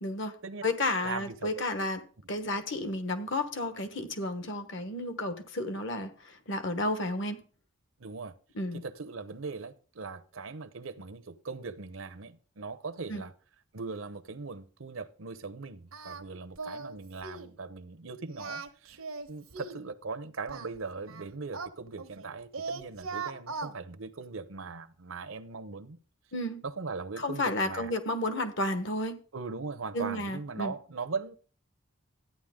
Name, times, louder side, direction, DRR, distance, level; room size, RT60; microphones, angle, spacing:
voice 1, 0.0-0.3 0.6-2.0 2.3-7.4 8.5-8.8 13.1-13.2 26.3-26.6 27.2-29.1 29.9-30.7, left 1 dB, 60° left, 1.2 m, -32 dB
voice 2, 1.0-1.5 8.0-8.3 8.7-13.3 13.7-19.0 19.3-26.0 26.6-27.9 29.3-31.3, right 4 dB, 70° right, 0.8 m, -39 dB
Singing, 15.9-16.2 16.6-17.0 17.2-17.5 18.3-19.9 20.5-22.3 22.5-23.7, right 4 dB, 90° right, 1.2 m, -39 dB
13.0 x 9.4 x 3.7 m
head